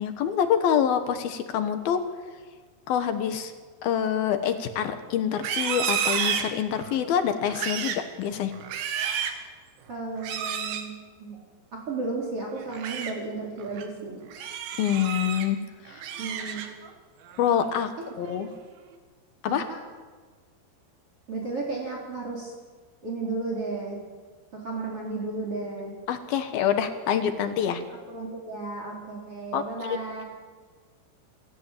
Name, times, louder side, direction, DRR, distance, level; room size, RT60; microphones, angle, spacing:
voice 1, 0.0-2.0 2.9-3.5 3.8-8.5 14.8-15.6 15.9-16.0 17.4-17.9 18.2-18.5 19.4-19.7 26.1-27.8 29.5-30.0, left 9 dB, 65° left, 9 dB, 2.8 m, -26 dB
Livestock farm animals working animals, 5.3-7.0 7.4-8.1 8.5-9.4 10.2-10.9 12.6-13.1 13.6-13.8 14.3-15.5 15.9-16.9 17.3-17.6 18.0-18.5, right 8 dB, 85° right, 3.9 m, -31 dB
voice 2, 9.9-10.9 11.2-11.4 11.7-14.2 16.2-16.6 18.3-18.4 21.3-22.5 23.0-24.0 24.5-25.9 27.8-30.2, right 3 dB, 35° right, -1 dB, 4.5 m, -33 dB
27.0 x 14.0 x 8.6 m, 1.4 s
omnidirectional pair, 5.1 m